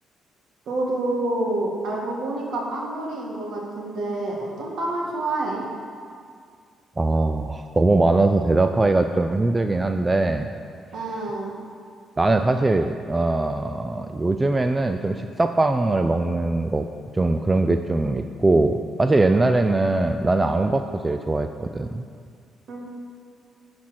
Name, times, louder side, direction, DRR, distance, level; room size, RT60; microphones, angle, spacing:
voice 1, 0.7-5.7 10.9-11.5 22.7-22.9, right 2 dB, 65° right, -1 dB, 1.7 m, -28 dB
voice 2, 7.0-10.5 12.2-16.9 17.1-22.1, right 2 dB, 20° right, 7 dB, 0.3 m, -21 dB
10.0 x 4.4 x 6.3 m, 2.2 s
cardioid pair, 90°, 0 cm